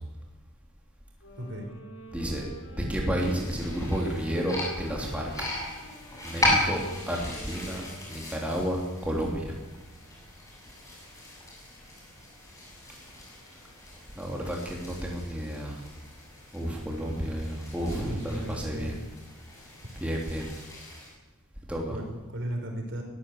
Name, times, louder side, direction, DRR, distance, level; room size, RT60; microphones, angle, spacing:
sound 1, 1.2-9.2, left 1 dB, 75° left, 7.0 m, -49 dB
voice 1, 2.1-2.4 2.7-5.3 6.2-9.6 14.1-15.9 16.5-18.9 19.9-20.5 21.7-22.0, equal, 5° right, -1 dB, 3.2 m, -31 dB
sound 2, 3.2-21.1, left 1 dB, 15° left, 7.2 m, -36 dB
voice 2, 17.9-18.9 21.9-23.0, right 1 dB, 55° right, 3 dB, 5.0 m, -36 dB
23.0 x 15.0 x 8.0 m, 1.2 s
head